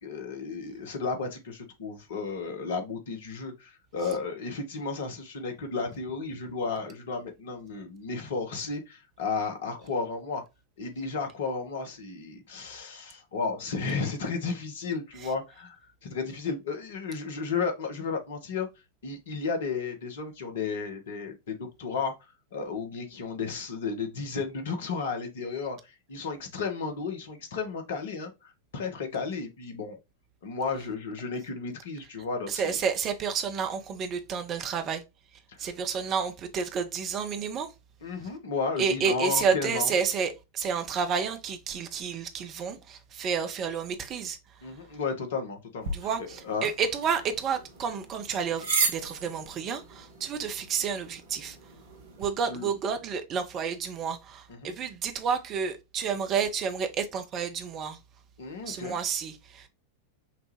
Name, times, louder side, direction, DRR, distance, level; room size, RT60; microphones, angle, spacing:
voice 1, 0.0-10.4 10.8-15.8 16.0-18.7 19.0-22.1 22.5-30.0 30.4-32.8 35.5-35.6 38.0-39.9 44.6-45.9 46.4-46.7 52.5-52.7 54.6-54.7 58.4-58.9, left 4 dB, 60° left, 1.1 m, -33 dB
voice 2, 32.5-35.0 35.6-37.7 38.8-44.4 45.9-51.6 52.2-58.0 58.6-59.7, right 6 dB, 30° right, 0.8 m, -30 dB
sound 1, 45.8-52.3, right 4 dB, 60° right, 1.1 m, -35 dB
5.8 x 2.4 x 3.1 m
figure-of-eight pair, 90°, 0 cm